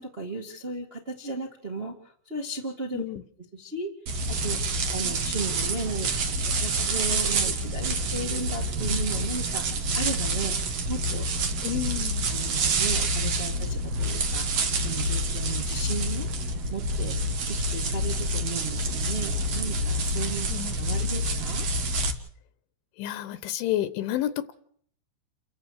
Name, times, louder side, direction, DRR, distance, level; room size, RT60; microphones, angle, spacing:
voice 1, 0.0-2.0 2.2-3.0 3.5-3.9 4.3-4.6 4.9-9.6 9.9-10.5 10.9-11.3 12.0-16.3 16.7-20.5 20.7-21.7, right 3 dB, 35° right, 0 dB, 0.9 m, -35 dB
sound 1, 4.1-22.1, right 1 dB, 70° right, 1.5 m, -27 dB
voice 2, 11.6-12.3 20.5-20.7 23.0-24.5, left 12 dB, 75° left, 12 dB, 3.3 m, -30 dB
29.5 x 15.0 x 6.6 m, 0.63 s
omnidirectional pair, 5.6 m